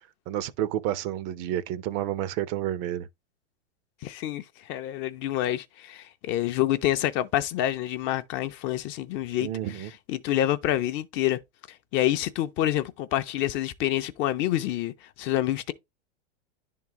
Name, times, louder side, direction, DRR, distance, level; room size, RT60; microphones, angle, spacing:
voice 1, 0.3-3.1 9.4-9.9, right 12 dB, 40° right, 0.5 m, -30 dB
voice 2, 4.0-4.4 4.7-9.5 10.1-11.4 11.9-15.7, left 13 dB, 35° left, 0.5 m, -27 dB
10.5 x 3.7 x 2.9 m
hypercardioid pair, 110°, 35 cm